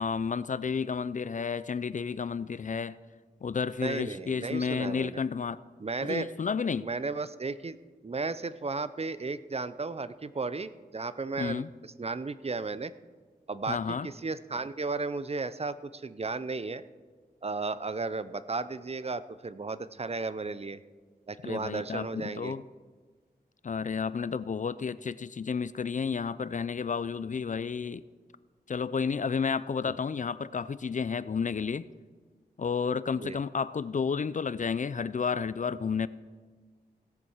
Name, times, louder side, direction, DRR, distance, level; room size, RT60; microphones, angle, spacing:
voice 1, 0.0-3.0 3.4-5.6 6.0-6.9 11.4-11.7 13.7-14.1 21.4-22.6 23.6-28.0 28.7-31.9 32.6-36.1, left 6 dB, 50° left, 17 dB, 0.4 m, -31 dB
voice 2, 3.8-5.2 5.8-6.3 6.8-7.8 8.0-11.6 12.0-12.9 13.5-16.8 17.4-20.8 21.3-22.5 29.9-30.0 33.2-33.4, right 3 dB, 35° right, 15 dB, 0.6 m, -34 dB
17.0 x 7.7 x 5.7 m, 1.5 s
cardioid pair, 50°, 17 cm